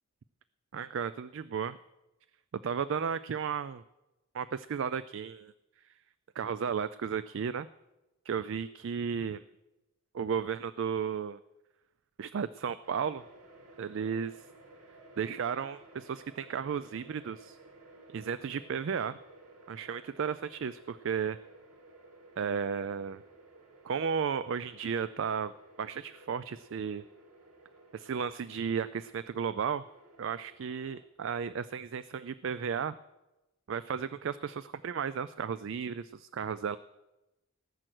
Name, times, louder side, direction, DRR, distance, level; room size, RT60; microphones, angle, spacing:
voice 1, 0.7-1.8 2.6-3.8 4.3-5.5 6.4-7.7 8.3-9.4 10.1-11.4 12.2-13.2 13.8-14.4 15.2-17.6 18.1-19.2 19.7-21.4 22.4-23.2 23.8-25.5 25.8-27.0 27.9-29.8 30.2-33.0 33.7-36.8, right 7 dB, 55° right, 15 dB, 0.3 m, -34 dB
sound 1, 12.8-31.0, right 2 dB, 85° right, 2.4 m, -56 dB
18.5 x 7.7 x 6.1 m, 1.0 s
head